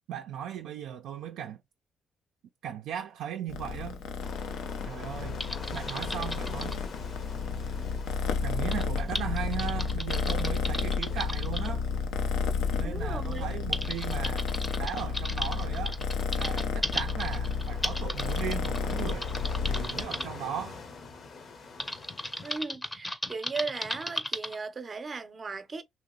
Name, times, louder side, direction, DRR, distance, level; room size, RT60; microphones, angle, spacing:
voice 1, 0.1-1.6 2.6-4.0 4.8-5.4 5.7-6.8 8.4-11.8 12.8-14.5 14.8-16.0 16.3-19.3 19.7-20.9, right 9 dB, 85° right, 0.4 m, -37 dB
Purr, 3.5-20.0, left 5 dB, 90° left, 0.5 m, -31 dB
sound 1, 4.2-22.6, left 4 dB, 55° left, 0.8 m, -47 dB
Typing, 5.4-6.8 8.7-11.7 12.7-12.8 13.3-20.3 21.8-24.6, left 1 dB, 10° left, 0.6 m, -36 dB
voice 2, 12.8-13.5 22.4-25.8, right 4 dB, 40° right, 0.6 m, -37 dB
2.9 x 2.0 x 3.7 m
cardioid pair, 90°, 0 cm